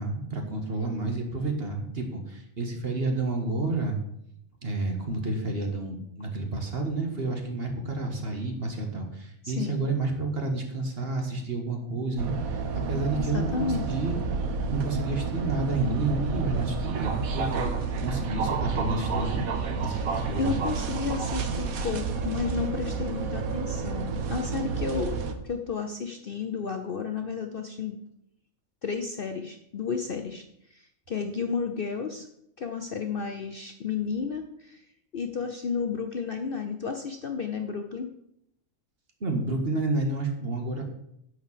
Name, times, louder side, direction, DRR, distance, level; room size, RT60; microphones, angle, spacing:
voice 1, 0.0-4.0 4.6-14.2 14.7-17.7 18.0-19.5 19.8-20.6 39.2-40.8, right 2 dB, 45° right, 3 dB, 1.8 m, -30 dB
voice 2, 9.4-9.9 13.1-13.8 19.8-20.1 20.4-25.2 25.4-28.0 28.8-32.3 32.6-34.9 35.1-38.1, left 5 dB, 50° left, 5 dB, 0.8 m, -32 dB
sound 1, 12.2-25.4, right 5 dB, 75° right, 1.4 m, -30 dB
10.5 x 4.9 x 7.4 m, 0.76 s
omnidirectional pair, 1.5 m